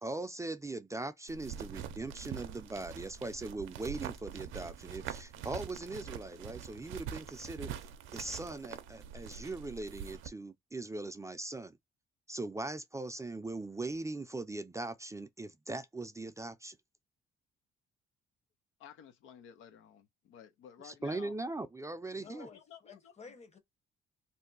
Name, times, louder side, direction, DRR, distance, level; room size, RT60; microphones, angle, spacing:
voice 1, 0.0-7.7 8.1-11.8 12.3-16.8 20.8-22.5, right 2 dB, 15° right, 0.4 m, -40 dB
sound 1, 1.3-10.3, right 9 dB, 85° right, 0.5 m, -44 dB
voice 2, 18.8-21.3 22.2-23.3, left 9 dB, 90° left, 0.6 m, -54 dB
voice 3, 22.2-23.6, left 4 dB, 35° left, 0.9 m, -52 dB
2.6 x 2.2 x 3.9 m
cardioid pair, 90°, 20 cm